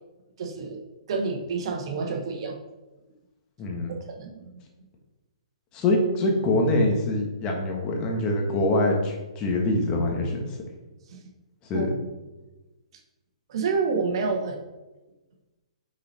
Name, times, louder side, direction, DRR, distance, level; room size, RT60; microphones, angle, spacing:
voice 1, 0.4-0.8 1.1-2.6 4.2-4.6 11.1-11.2 11.7-11.9 13.5-14.6, right 4 dB, 55° right, 3 dB, 1.1 m, -28 dB
voice 2, 3.6-3.9 5.7-10.6 11.7-11.9, left 1 dB, 25° left, 1 dB, 1.3 m, -24 dB
6.3 x 4.2 x 4.2 m, 1.1 s
hypercardioid pair, 145°, 3 cm